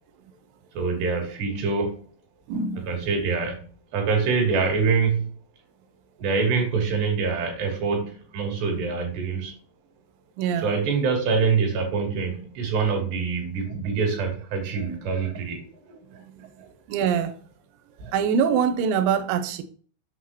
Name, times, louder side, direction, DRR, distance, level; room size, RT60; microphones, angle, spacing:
voice 1, 0.7-2.0 2.9-3.7 3.9-5.4 6.2-9.5 10.6-16.2 16.6-16.7 18.0-18.1, right 5 dB, 65° right, 4.0 m, -25 dB
voice 2, 2.5-2.9 10.4-10.7 16.3-16.4 16.9-17.4 18.1-19.6, right 7 dB, 80° right, 2.0 m, -24 dB
8.1 x 5.8 x 3.1 m
omnidirectional pair, 5.3 m